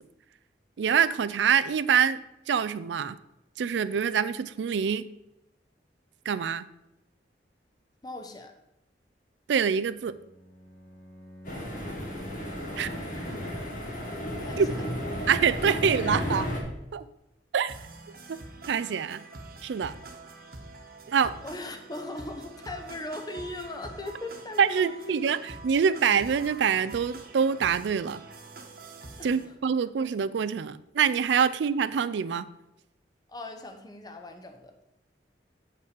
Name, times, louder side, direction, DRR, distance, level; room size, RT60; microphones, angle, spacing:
voice 1, 0.8-3.2 3.6-5.1 6.3-6.6 9.5-10.2 12.8-12.9 14.6-14.7 15.3-16.5 16.9-17.0 17.5-17.7 18.3-18.4 18.7-19.2 19.6-19.9 21.1-21.3 24.6-25.4 25.6-28.2 29.2-32.5, right 7 dB, 85° right, 15 dB, 0.4 m, -25 dB
voice 2, 8.0-8.6 13.2-13.5 14.4-14.9 21.4-25.3 29.2-29.3 33.3-34.7, left 2 dB, 25° left, 5 dB, 0.9 m, -39 dB
Bowed string instrument, 9.9-13.0, left 1 dB, 5° left, 1.4 m, -48 dB
sound 1, 11.4-16.6, equal, 50° left, 1.9 m, -33 dB
sound 2, 17.7-29.5, right 3 dB, 55° right, 1.2 m, -46 dB
8.1 x 5.4 x 5.0 m, 0.90 s
head